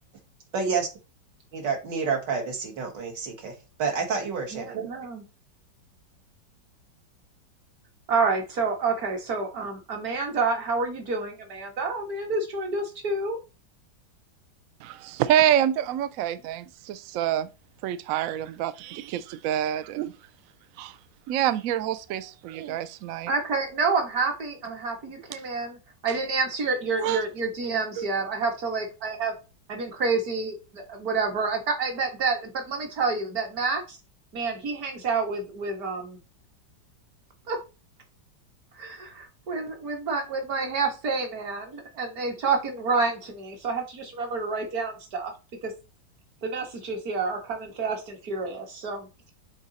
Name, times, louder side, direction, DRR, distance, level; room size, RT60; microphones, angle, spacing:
voice 1, 0.5-0.9 1.5-3.5 3.8-4.9, right 5 dB, 70° right, 2.2 m, -29 dB
voice 2, 4.5-5.2 8.1-13.4 23.3-29.3 29.7-34.0 34.3-36.2 37.5-37.6 38.8-45.3 45.6-45.7 46.4-49.1, right 4 dB, 55° right, 2.0 m, -28 dB
voice 3, 14.8-17.5 17.8-20.1 20.8-21.0 21.3-23.3 27.0-27.2 28.0-28.1, right 11 dB, 85° right, 0.7 m, -27 dB
7.1 x 3.9 x 4.1 m
omnidirectional pair, 2.0 m